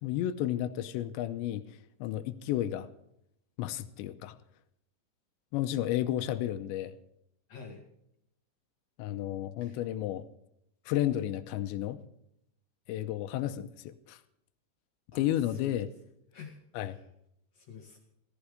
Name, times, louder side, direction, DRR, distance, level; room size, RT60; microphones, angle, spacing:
voice 1, 0.0-1.6 2.0-2.9 3.6-4.4 5.5-6.9 9.0-10.3 10.9-12.0 12.9-14.2 15.2-15.9 16.8-17.0, left 12 dB, 85° left, 11 dB, 2.9 m, -32 dB
voice 2, 7.5-7.8 9.6-9.8 15.1-15.9 16.3-17.0 17.5-18.0, left 5 dB, 55° left, 2 dB, 2.0 m, -48 dB
15.0 x 14.5 x 5.1 m, 0.75 s
omnidirectional pair, 5.3 m